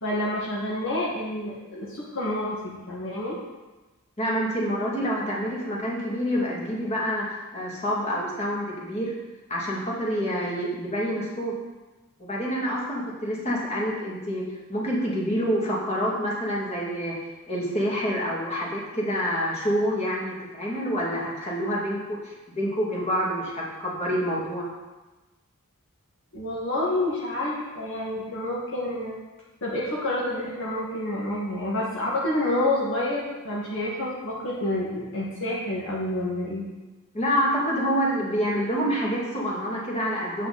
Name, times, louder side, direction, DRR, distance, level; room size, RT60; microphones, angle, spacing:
voice 1, 0.0-3.4 26.3-29.2 29.6-36.7, left 1 dB, 60° left, -6 dB, 2.1 m, -28 dB
voice 2, 4.2-9.1 9.5-11.5 12.2-14.4 14.7-17.2 17.5-24.7 37.1-40.5, equal, 30° left, -4 dB, 2.5 m, -27 dB
9.1 x 8.3 x 4.3 m, 1.1 s
head